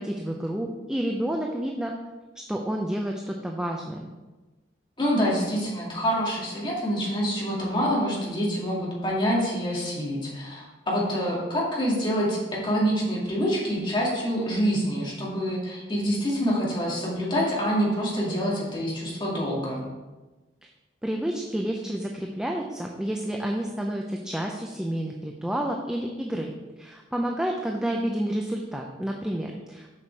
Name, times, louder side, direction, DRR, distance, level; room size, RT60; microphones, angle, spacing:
voice 1, 0.0-1.9 2.5-4.0 21.0-26.5 26.8-29.9, right 1 dB, 5° right, 0 dB, 0.5 m, -29 dB
voice 2, 5.0-19.8, equal, 25° left, -5 dB, 2.4 m, -26 dB
7.5 x 5.9 x 4.6 m, 1.2 s
head